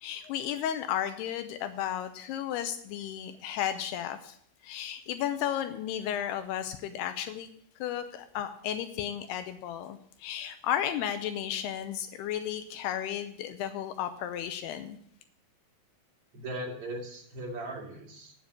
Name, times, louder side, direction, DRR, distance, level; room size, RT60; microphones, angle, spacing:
voice 1, 0.0-4.4 4.6-7.5 7.8-15.0, left 10 dB, 85° left, 9 dB, 2.6 m, -33 dB
voice 2, 16.3-18.3, right 1 dB, 40° right, -1 dB, 2.8 m, -38 dB
8.9 x 7.3 x 8.2 m, 0.66 s
omnidirectional pair, 4.7 m